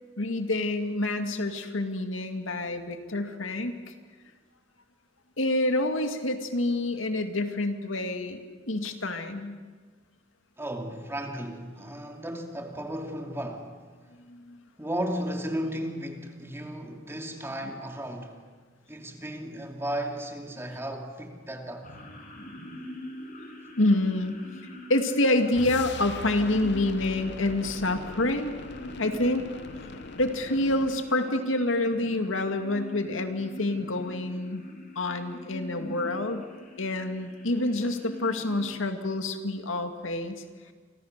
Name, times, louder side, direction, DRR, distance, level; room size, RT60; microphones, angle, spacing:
voice 1, 0.2-3.7 5.4-8.4 8.7-9.6 14.3-14.6 23.8-24.4 24.9-28.5 29.0-29.4 30.2-34.6 35.0-36.4 36.8-40.3, left 2 dB, 90° left, 2.2 m, -27 dB
voice 2, 10.6-13.8 14.8-18.3 18.9-21.9, right 1 dB, 15° right, 2.7 m, -34 dB
sound 1, 21.8-38.7, equal, 45° left, 6.2 m, -43 dB
sound 2, 25.5-31.1, left 3 dB, 60° left, 0.9 m, -41 dB
30.0 x 25.0 x 6.7 m
head